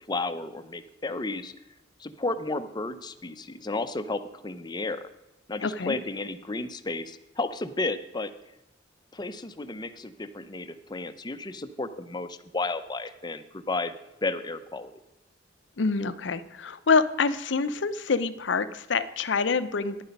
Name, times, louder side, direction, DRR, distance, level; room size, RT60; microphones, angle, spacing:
voice 1, 0.1-1.5 2.0-5.1 5.5-8.3 9.1-13.9 14.2-14.9, left 2 dB, 20° left, 9 dB, 0.6 m, -33 dB
voice 2, 5.6-6.0 15.8-20.0, left 4 dB, 65° left, 13 dB, 0.6 m, -26 dB
11.0 x 10.0 x 5.3 m, 0.95 s
head